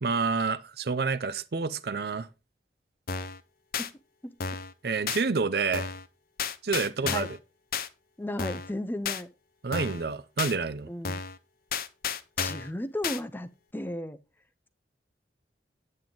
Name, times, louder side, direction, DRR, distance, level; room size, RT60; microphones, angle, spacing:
voice 1, 0.0-2.3 4.8-5.9 6.6-7.3 9.6-10.9, right 4 dB, 60° right, 0.6 m, -28 dB
sound 1, 3.1-3.4 3.7-3.9 4.4-4.7 5.1-5.2 5.7-6.1 6.4-7.4 7.7-7.9 8.4-8.7 9.1-9.2 9.7-10.0 10.4-10.5 11.0-11.4 11.7-12.7 13.0-13.2, left 6 dB, 55° left, 0.6 m, -32 dB
voice 2, 8.2-9.3 10.9-11.2 12.4-14.2, left 1 dB, 10° left, 0.5 m, -34 dB
8.7 x 7.7 x 3.8 m
head